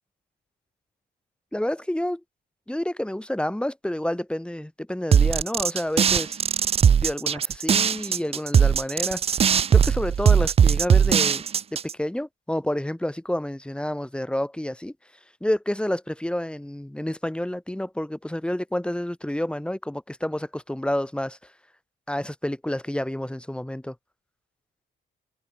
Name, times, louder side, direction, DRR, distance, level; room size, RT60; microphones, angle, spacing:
voice 1, 1.5-2.2 2.7-6.4 7.0-9.2 9.7-11.4 11.7-14.9 15.4-21.4 22.1-24.0, left 1 dB, 5° left, 2.1 m, -29 dB
sound 1, 5.1-11.9, right 7 dB, 30° right, 0.4 m, -19 dB
cardioid pair, 90°, 20 cm